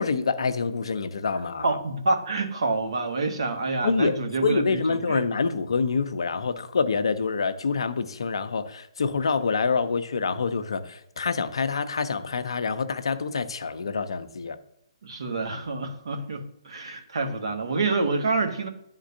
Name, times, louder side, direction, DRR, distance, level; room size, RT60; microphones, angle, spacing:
voice 1, 0.0-1.8 3.8-4.1 4.4-14.6, left 5 dB, 70° left, 10 dB, 0.6 m, -26 dB
voice 2, 1.6-5.2 15.0-18.7, right 3 dB, 65° right, 4 dB, 1.2 m, -27 dB
11.0 x 3.7 x 2.6 m, 0.75 s
figure-of-eight pair, 130°, 3 cm